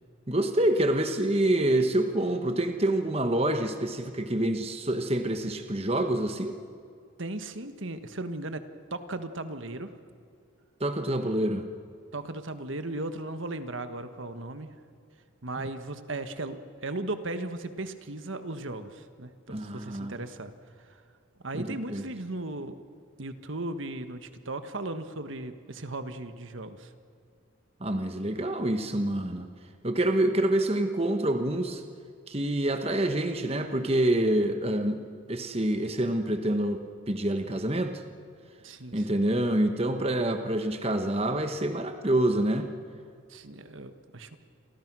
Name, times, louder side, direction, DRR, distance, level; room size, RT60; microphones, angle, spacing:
voice 1, 0.3-6.6 10.8-11.7 15.6-15.7 19.5-20.1 21.5-22.0 27.8-29.5 29.8-31.8 32.3-35.0 35.3-38.0 38.9-42.7, right 1 dB, 30° right, 7 dB, 1.2 m, -27 dB
voice 2, 7.2-8.6 8.9-9.9 12.1-14.7 15.4-20.5 21.4-22.8 23.2-26.9 38.6-39.1 43.3-44.4, right 2 dB, 70° right, 9 dB, 1.5 m, -36 dB
29.5 x 24.0 x 6.2 m, 2.3 s
head